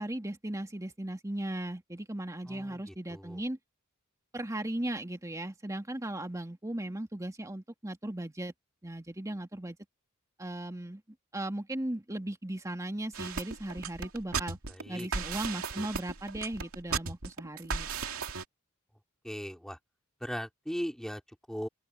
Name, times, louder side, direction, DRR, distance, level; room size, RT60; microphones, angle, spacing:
voice 1, 0.0-3.6 4.3-8.5 8.8-9.8 10.4-11.0 11.3-14.6 14.9-17.9, right 1 dB, 15° right, 2.0 m, -37 dB
voice 2, 2.5-3.4 14.7-15.1 19.2-19.8 20.2-21.7, equal, ahead, 3.4 m, -39 dB
sound 1, 13.1-18.4, right 5 dB, 80° right, 2.4 m, -36 dB
open air
head